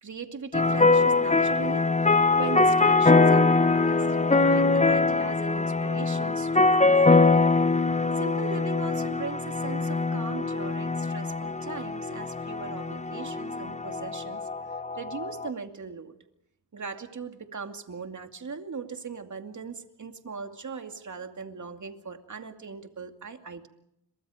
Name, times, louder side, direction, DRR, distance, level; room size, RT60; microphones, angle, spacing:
voice 1, 0.0-4.1 4.3-7.4 8.2-14.5 14.9-16.1 16.7-23.7, right 5 dB, 35° right, 6 dB, 2.5 m, -39 dB
sound 1, 0.5-15.5, left 3 dB, 15° left, 1.0 m, -23 dB
29.5 x 23.5 x 5.1 m, 0.79 s
cardioid pair, 90°, 49 cm